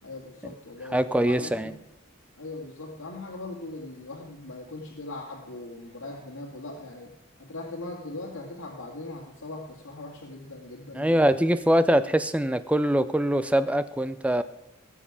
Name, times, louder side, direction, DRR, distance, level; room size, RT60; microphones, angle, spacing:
voice 1, 0.0-1.8 2.4-7.1 7.4-11.4, left 2 dB, 90° left, -2 dB, 2.0 m, -40 dB
voice 2, 0.9-1.7 10.9-14.4, right 1 dB, 5° right, 13 dB, 0.4 m, -23 dB
18.5 x 7.3 x 4.9 m, 0.95 s
head